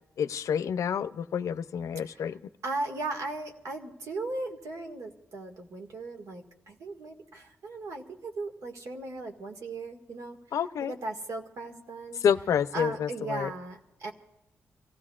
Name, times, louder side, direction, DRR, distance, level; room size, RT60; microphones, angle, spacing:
voice 1, 0.2-2.4 10.5-11.0 12.2-13.5, left 8 dB, 90° left, 13 dB, 0.5 m, -28 dB
voice 2, 2.0-2.4 2.6-10.4 10.8-12.2 12.7-14.1, right 2 dB, 90° right, 3 dB, 1.9 m, -37 dB
27.5 x 16.5 x 2.4 m, 0.97 s
wide cardioid pair, 140°, 5 cm